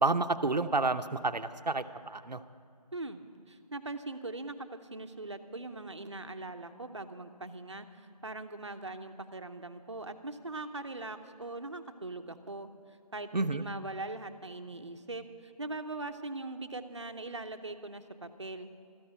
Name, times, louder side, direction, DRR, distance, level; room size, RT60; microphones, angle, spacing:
voice 1, 0.0-2.4 13.3-13.6, right 3 dB, 85° right, 10 dB, 0.8 m, -30 dB
voice 2, 2.9-12.7 13.1-18.7, right 2 dB, 45° right, 8 dB, 0.8 m, -41 dB
13.5 x 9.1 x 8.9 m, 2.4 s
figure-of-eight pair, 170°, 21 cm